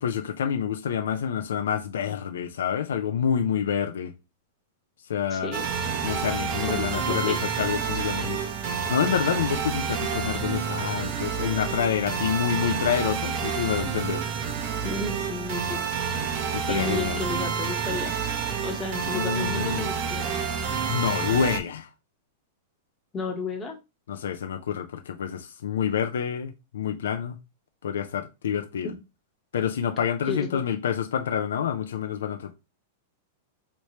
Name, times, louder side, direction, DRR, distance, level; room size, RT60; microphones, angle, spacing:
voice 1, 0.0-4.1 5.1-5.5 6.0-14.2 16.5-17.2 19.1-19.9 20.9-21.9 24.1-27.4 27.8-28.9 29.5-32.5, left 8 dB, 90° left, 0.4 m, -28 dB
voice 2, 5.3-5.7 6.6-7.4 14.8-15.8 16.7-18.1 18.6-20.4 23.1-23.8 30.3-30.6, left 3 dB, 15° left, 0.9 m, -33 dB
sound 1, 5.5-21.6, right 6 dB, 50° right, 0.7 m, -29 dB
3.2 x 3.0 x 2.8 m
hypercardioid pair, 140°, 0 cm